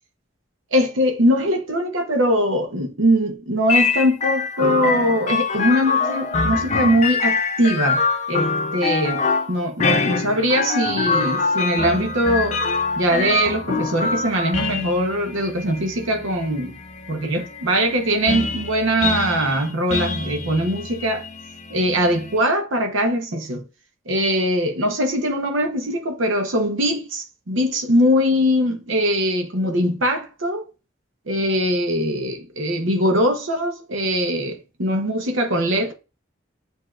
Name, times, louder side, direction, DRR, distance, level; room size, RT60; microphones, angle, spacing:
voice 1, 0.7-12.6 13.0-16.8 17.1-21.3 21.7-23.6 24.1-30.6 31.3-35.9, equal, 85° right, 0.9 m, -21 dB
sound 1, 3.7-22.4, left 4 dB, 35° left, 0.4 m, -25 dB
7.8 x 2.7 x 2.4 m
head